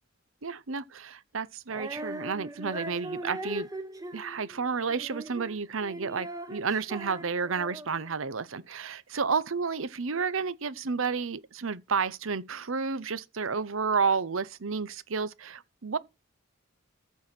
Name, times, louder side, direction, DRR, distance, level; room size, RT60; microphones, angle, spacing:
voice 1, 0.4-3.7 4.1-16.0, right 5 dB, 75° right, 0.8 m, -31 dB
Female singing, 1.7-8.1, right 1 dB, 15° right, 1.1 m, -40 dB
14.0 x 4.7 x 5.9 m
head